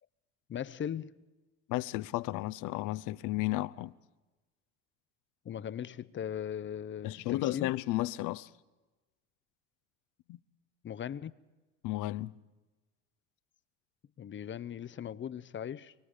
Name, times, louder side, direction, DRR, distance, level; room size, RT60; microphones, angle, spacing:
voice 1, 0.5-1.2 5.4-7.7 10.8-11.3 14.2-15.9, left 9 dB, 35° left, 0.8 m, -39 dB
voice 2, 1.7-3.9 7.0-8.5 10.3-10.4 11.8-12.3, left 17 dB, 60° left, 0.8 m, -33 dB
25.0 x 23.0 x 5.1 m
hypercardioid pair, 70°, 35 cm